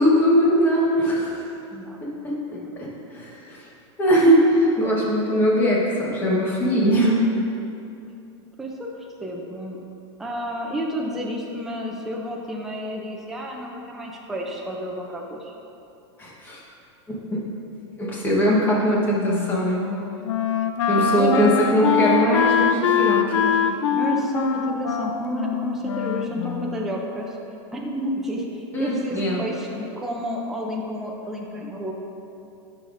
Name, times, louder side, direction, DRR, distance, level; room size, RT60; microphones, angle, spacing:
voice 1, 0.0-1.3 2.0-2.9 3.1-3.7 4.0-7.2 16.2-16.6 17.1-17.4 18.0-19.9 20.9-23.6 28.7-29.4, equal, 15° left, -5 dB, 1.1 m, -21 dB
voice 2, 8.6-8.9 9.2-9.8 10.2-15.5 21.0-21.5 23.9-27.4 27.7-31.9, equal, ahead, -1 dB, 0.4 m, -30 dB
Wind instrument woodwind instrument, 19.2-27.0, left 7 dB, 85° left, 0.4 m, -23 dB
11.5 x 5.6 x 2.5 m, 2.7 s
supercardioid pair, 165°, 15 cm